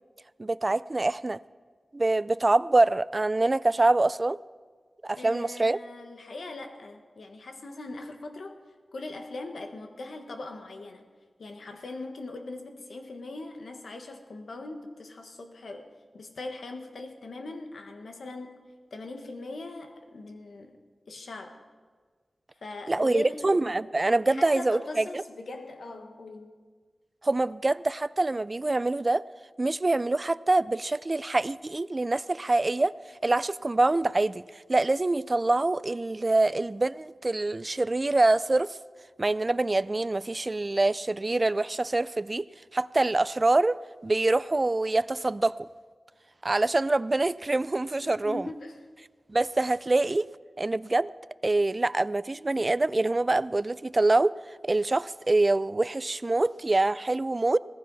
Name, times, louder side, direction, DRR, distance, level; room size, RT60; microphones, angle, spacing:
voice 1, 0.4-1.4 1.9-4.4 5.0-5.8 22.9-25.2 27.2-29.2 29.6-32.9 33.2-38.8 39.2-42.5 42.7-45.7 46.4-48.5 49.3-50.3 50.6-51.1 51.4-54.3 54.6-57.6, right 2 dB, 35° right, 19 dB, 0.3 m, -25 dB
voice 2, 5.2-8.6 8.9-11.0 11.4-15.9 16.1-20.8 21.1-21.6 22.6-23.5 24.3-26.5 48.0-48.8, left 2 dB, 85° left, 5 dB, 1.4 m, -40 dB
18.0 x 14.5 x 4.1 m, 1.5 s
wide cardioid pair, 65°, 0 cm